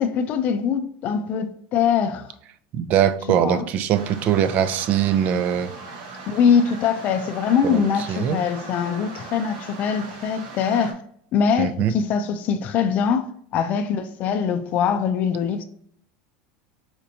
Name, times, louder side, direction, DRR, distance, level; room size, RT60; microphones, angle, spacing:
voice 1, 0.0-2.3 3.3-3.7 6.3-11.0 11.3-15.6, left 7 dB, 45° left, 0.4 m, -23 dB
voice 2, 2.7-5.7 7.6-7.8 8.1-8.4 11.6-11.9, right 9 dB, 45° right, 0.4 m, -21 dB
sound 1, 3.9-10.9, right 4 dB, 75° right, 1.0 m, -39 dB
4.3 x 2.6 x 2.8 m
supercardioid pair, 125°, 4 cm